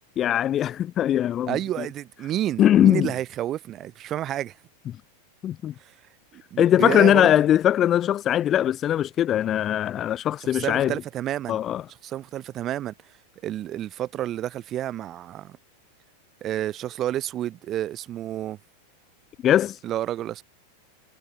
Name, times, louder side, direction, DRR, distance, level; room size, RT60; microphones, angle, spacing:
voice 1, 0.2-1.9 2.6-3.1 5.4-5.7 6.6-10.9 11.5-11.8 19.4-19.8, left 11 dB, 30° left, 0.3 m, -21 dB
voice 2, 1.5-4.5 5.8-5.9 6.3-7.3 10.5-11.6 12.0-12.9 13.4-15.6 16.4-18.6 19.8-20.4, right 12 dB, 30° right, 2.0 m, -30 dB
figure-of-eight pair, 90°, 0 cm